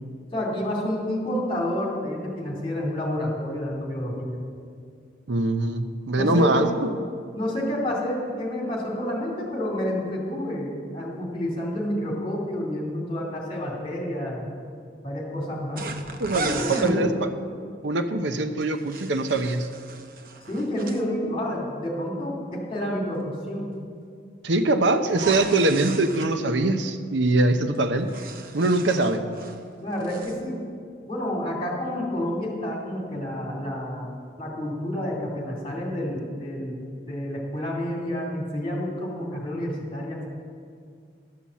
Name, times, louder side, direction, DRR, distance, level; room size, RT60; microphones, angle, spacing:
voice 1, 0.3-4.4 6.1-6.7 7.3-14.5 15.0-15.8 16.4-17.1 20.5-23.7 29.8-30.6 31.1-34.1 34.4-40.3, left 1 dB, 30° left, -3 dB, 2.6 m, -29 dB
voice 2, 5.3-6.7 16.2-17.3 17.8-19.7 24.4-28.1 28.5-29.2, right 2 dB, 85° right, 8 dB, 0.7 m, -23 dB
sound 1, 15.8-17.0 18.6-21.0 25.1-26.3 27.7-29.6 29.9-30.4, right 4 dB, 50° right, 0.7 m, -36 dB
12.0 x 7.0 x 7.4 m, 2.2 s
head